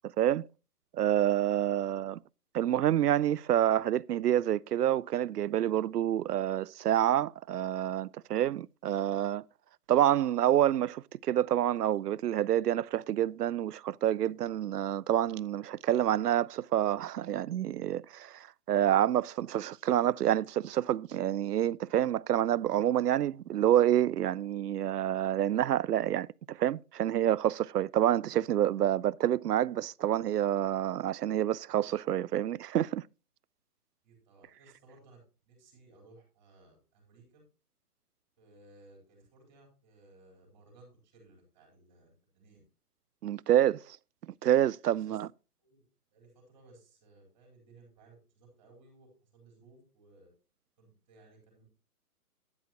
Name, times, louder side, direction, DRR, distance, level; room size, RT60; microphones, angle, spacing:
voice 1, 0.9-2.2 2.5-9.4 9.9-33.0 43.2-44.0 44.4-45.3, right 11 dB, 80° right, 0.6 m, -28 dB
voice 2, 34.0-35.2 35.5-37.4 38.4-42.6 45.0-45.2 45.6-45.8 46.1-50.3 50.8-51.6, right 2 dB, 20° right, 4.1 m, -59 dB
11.0 x 10.5 x 2.9 m
hypercardioid pair, 175°, 46 cm